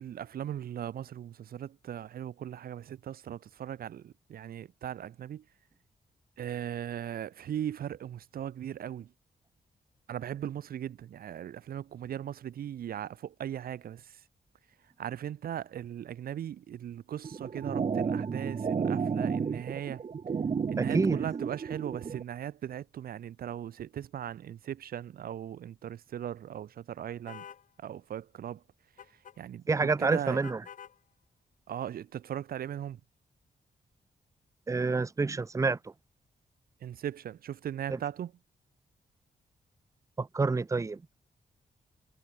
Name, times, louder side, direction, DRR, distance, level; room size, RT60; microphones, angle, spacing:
voice 1, 0.0-5.4 6.4-9.1 10.1-14.0 15.0-20.0 20.7-27.4 27.8-28.6 29.4-30.4 31.7-33.0 36.8-38.3, right 10 dB, 75° right, 0.7 m, -38 dB
sound 1, 17.2-22.2, right 6 dB, 40° right, 1.3 m, -32 dB
voice 2, 20.8-21.2 29.7-30.6 34.7-35.8 37.9-38.0 40.2-41.0, right 4 dB, 20° right, 0.7 m, -28 dB
sound 2, 27.3-27.6 29.0-29.4 30.4-31.0, left 8 dB, 60° left, 1.1 m, -47 dB
wide cardioid pair, 145°, 15 cm